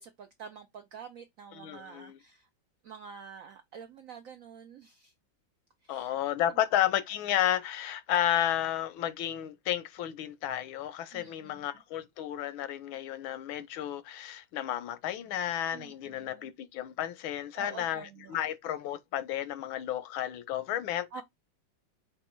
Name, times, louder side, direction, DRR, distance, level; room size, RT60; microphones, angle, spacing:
voice 1, 0.0-2.5 2.8-5.1 5.8-6.1 11.1-11.7 15.7-16.5 17.6-18.4 21.1-21.2, right 6 dB, 80° right, 0.7 m, -48 dB
voice 2, 1.6-2.2 5.9-21.1, left 11 dB, 90° left, 1.5 m, -32 dB
5.3 x 2.3 x 4.4 m
omnidirectional pair, 2.1 m